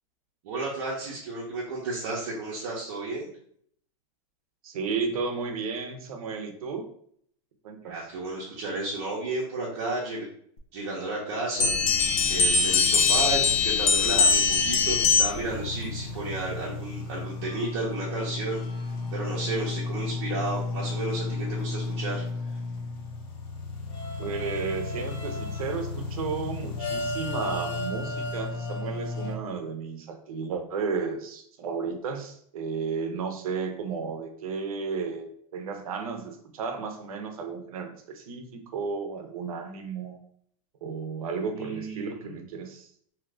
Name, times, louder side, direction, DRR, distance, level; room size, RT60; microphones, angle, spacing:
voice 1, 0.4-3.3 7.8-10.3 10.7-11.7 12.3-18.6 19.1-22.2 41.5-42.5, right 2 dB, 50° right, -5 dB, 0.7 m, -32 dB
voice 2, 4.6-6.9 7.6-8.0 24.2-40.2 40.8-42.9, right 5 dB, 85° right, 5 dB, 0.7 m, -33 dB
sound 1, 11.6-15.5, left 5 dB, 75° left, 0.6 m, -22 dB
sound 2, 15.4-29.4, left 3 dB, 30° left, 0.5 m, -33 dB
2.8 x 2.5 x 3.2 m, 0.63 s
supercardioid pair, 165°, 18 cm